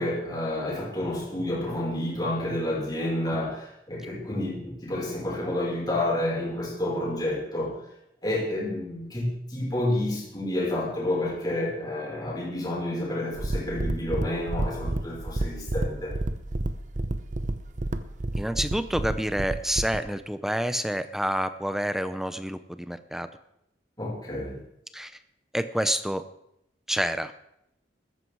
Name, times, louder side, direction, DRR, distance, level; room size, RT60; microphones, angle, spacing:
voice 1, 0.0-7.7 8.2-16.1 24.0-24.6, left 1 dB, 20° left, -5 dB, 5.5 m, -29 dB
sound 1, 13.4-20.0, right 1 dB, 40° right, 0.7 m, -30 dB
voice 2, 18.4-23.3 24.9-25.2 25.5-26.2 26.9-27.3, equal, ahead, 11 dB, 0.6 m, -28 dB
14.0 x 13.5 x 4.7 m, 0.79 s
head